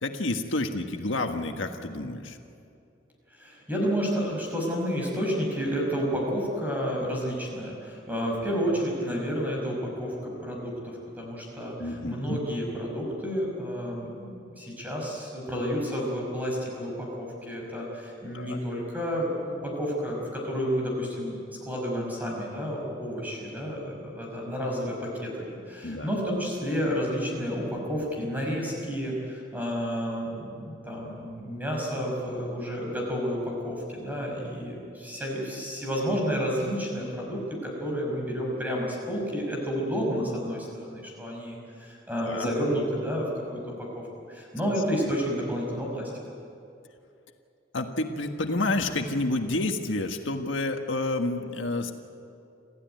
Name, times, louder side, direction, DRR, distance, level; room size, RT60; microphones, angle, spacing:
voice 1, 0.0-2.4 11.8-12.4 18.3-18.6 25.8-26.1 42.3-42.5 47.7-51.9, left 2 dB, 90° left, 5 dB, 1.6 m, -29 dB
voice 2, 3.4-21.4 21.6-44.0 44.3-46.1, equal, 10° right, -2 dB, 5.8 m, -30 dB
27.0 x 15.0 x 9.5 m, 2.6 s
head